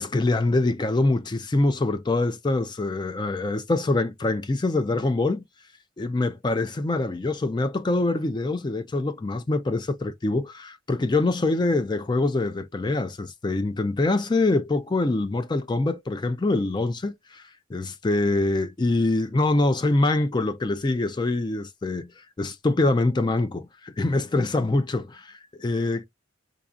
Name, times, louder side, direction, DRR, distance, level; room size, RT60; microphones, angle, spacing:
voice 1, 0.0-5.4 6.0-17.4 17.7-22.1 22.4-26.1, left 2 dB, 20° left, 0.3 m, -24 dB
4.9 x 2.6 x 2.3 m
head